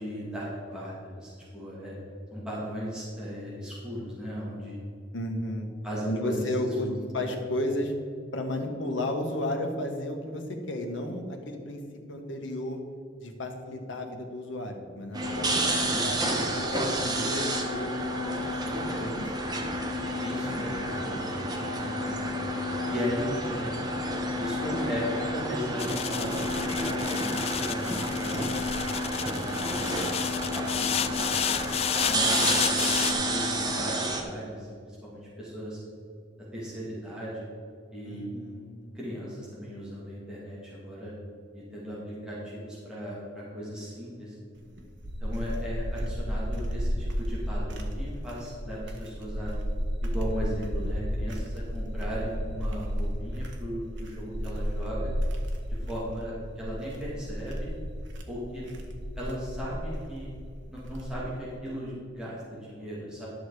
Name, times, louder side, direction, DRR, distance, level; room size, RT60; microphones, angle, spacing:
voice 1, 0.0-2.0 2.3-4.8 5.8-7.3 15.9-16.4 20.2-22.5 22.9-23.7 24.4-28.9 29.4-30.0 30.3-30.9 31.2-35.8 36.5-37.5 37.9-38.3 38.9-41.1 41.5-44.3 45.2-49.5 50.0-55.1 55.7-57.7 58.3-58.7 59.2-60.3 60.7-63.3, equal, 5° right, -8 dB, 2.5 m, -37 dB
voice 2, 5.1-5.7 6.0-6.9 7.1-7.9 8.3-11.8 12.1-12.8 13.2-19.3 21.5-22.5 38.0-39.0 55.8-56.1, left 1 dB, 85° left, 3 dB, 1.5 m, -33 dB
sound 1, 15.1-34.2, right 1 dB, 20° right, 1.0 m, -30 dB
sound 2, 25.8-33.1, left 9 dB, 30° left, 0.4 m, -31 dB
sound 3, 44.6-61.4, equal, 70° right, 1.4 m, -33 dB
11.5 x 6.5 x 4.9 m, 2.3 s
head